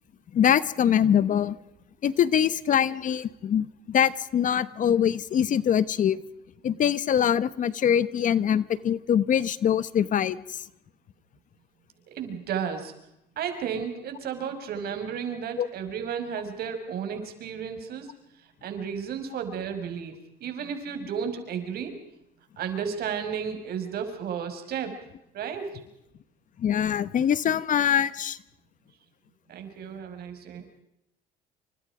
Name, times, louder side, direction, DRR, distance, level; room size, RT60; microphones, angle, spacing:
voice 1, 0.3-1.6 2.0-6.2 6.6-10.6 15.6-15.7 26.6-28.4, left 9 dB, 50° left, 16 dB, 1.2 m, -23 dB
voice 2, 12.1-12.9 13.4-18.1 18.6-22.0 22.6-24.9 25.3-25.8 29.5-30.7, right 7 dB, 65° right, 6 dB, 6.0 m, -33 dB
28.5 x 26.0 x 5.0 m, 0.82 s
cardioid pair, 110°, 17 cm